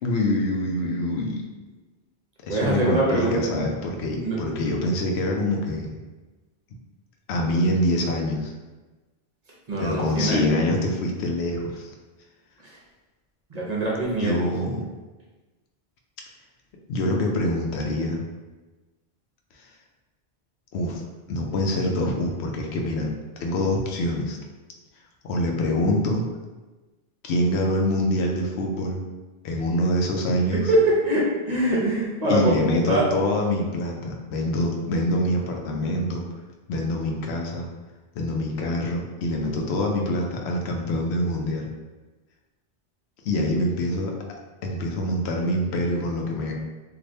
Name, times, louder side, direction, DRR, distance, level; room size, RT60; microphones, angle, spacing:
voice 1, 0.0-1.5 2.4-6.0 7.3-8.5 9.8-11.9 14.2-14.9 16.9-18.2 20.7-21.0 21.3-23.1 23.4-24.4 25.2-26.2 27.2-29.0 29.4-30.6 32.3-36.2 36.7-37.7 38.2-41.7 43.2-44.1 44.6-46.5, left 1 dB, 85° left, 0 dB, 0.8 m, -25 dB
voice 2, 2.5-3.5 4.1-4.4 9.7-10.5 12.6-12.8 13.5-14.5 30.7-30.8 31.0-32.6 32.9-33.1, right 1 dB, 45° right, -4 dB, 0.7 m, -24 dB
3.2 x 2.6 x 2.6 m, 1.2 s
omnidirectional pair, 1.1 m